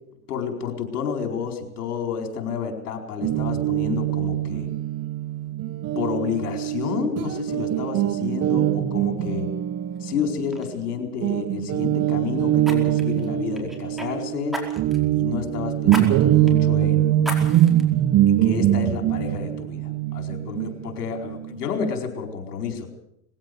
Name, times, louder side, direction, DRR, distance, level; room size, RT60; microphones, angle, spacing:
voice 1, 0.3-4.7 5.9-9.5 10.0-14.6 15.1-17.3 18.3-22.9, left 6 dB, 75° left, 5 dB, 4.7 m, -30 dB
Guitar, 3.2-10.9 11.2-21.7, right 13 dB, 35° right, 1.1 m, -23 dB
Fire, 9.9-10.1 10.5-10.7 12.6-14.1 14.5-15.1 15.9-16.1 16.5-16.6 17.2-17.8 18.4-18.5, left 1 dB, ahead, 4.7 m, -33 dB
21.0 x 16.0 x 7.9 m, 0.77 s
hypercardioid pair, 105°, 46 cm